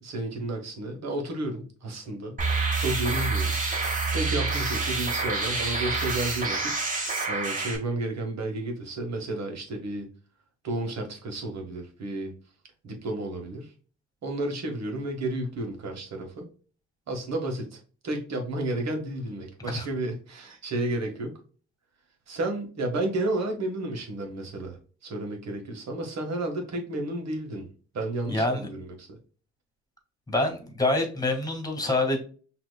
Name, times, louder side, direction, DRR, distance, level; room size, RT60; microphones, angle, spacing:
voice 1, 0.0-2.4 2.7-3.6 4.1-6.7 7.3-10.1 10.6-12.3 12.8-13.7 14.2-16.5 17.1-21.3 22.3-24.8 25.0-27.7 27.9-29.2, right 2 dB, 60° right, 3 dB, 1.5 m, -32 dB
sound 1, 2.4-7.8, right 3 dB, 25° right, 1.6 m, -27 dB
voice 2, 28.3-28.7 30.3-32.2, left 2 dB, 10° left, 4 dB, 1.8 m, -26 dB
6.0 x 2.9 x 2.2 m, 0.39 s
cardioid pair, 90°, 30 cm